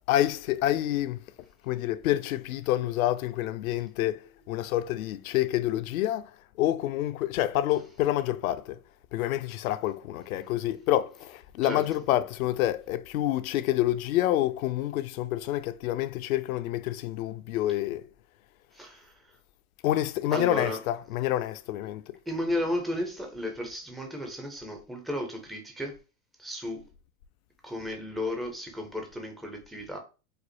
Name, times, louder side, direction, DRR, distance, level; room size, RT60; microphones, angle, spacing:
voice 1, 0.1-1.3 1.6-6.3 6.6-8.8 9.1-18.1 19.8-22.2, left 13 dB, 65° left, 0.5 m, -28 dB
voice 2, 18.7-19.2 20.3-20.8 22.3-26.0 26.4-26.9 27.6-30.0, left 1 dB, ahead, 0.4 m, -33 dB
5.0 x 2.0 x 3.0 m
hypercardioid pair, 100°, 47 cm